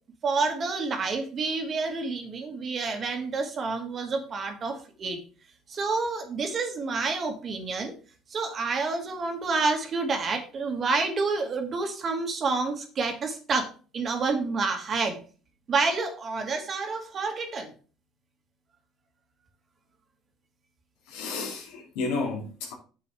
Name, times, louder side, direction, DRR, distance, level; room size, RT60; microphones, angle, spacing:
voice 1, 0.2-5.2 5.7-7.9 8.3-15.2 15.7-17.7, right 4 dB, 40° right, 4 dB, 2.1 m, -29 dB
voice 2, 21.1-22.7, left 3 dB, 90° left, 0 dB, 3.0 m, -32 dB
8.9 x 6.7 x 3.5 m, 0.38 s
cardioid pair, 105°, 0 cm